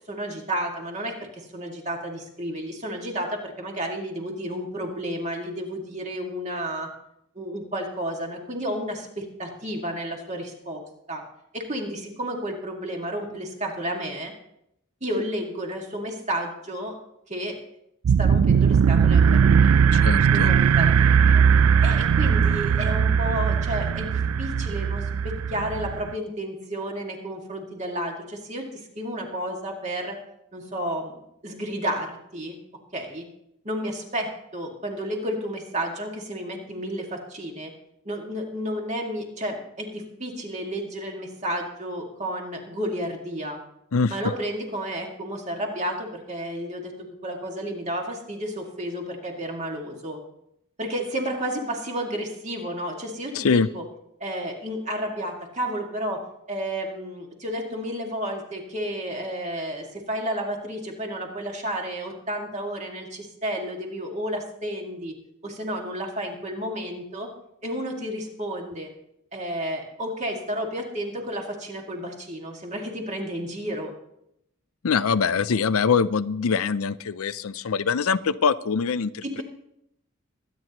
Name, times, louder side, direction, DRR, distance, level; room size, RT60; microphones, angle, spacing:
voice 1, 0.0-6.9 7.4-10.8 11.1-11.2 11.5-14.3 15.0-17.0 17.3-17.6 18.2-19.7 20.3-21.4 21.8-30.2 30.5-32.6 32.9-33.3 33.6-37.7 38.1-43.6 44.1-46.9 47.2-50.2 50.8-53.8 54.2-56.2 56.5-65.2 65.4-67.3 67.6-68.9 69.3-73.9 79.2-79.4, equal, 35° right, 1 dB, 2.0 m, -31 dB
sound 1, 18.0-26.1, right 7 dB, 85° right, 0.4 m, -19 dB
voice 2, 19.9-20.5 43.9-44.1 53.3-53.7 74.8-79.4, left 5 dB, 85° left, 15 dB, 0.5 m, -23 dB
23.0 x 9.5 x 3.0 m, 0.80 s
head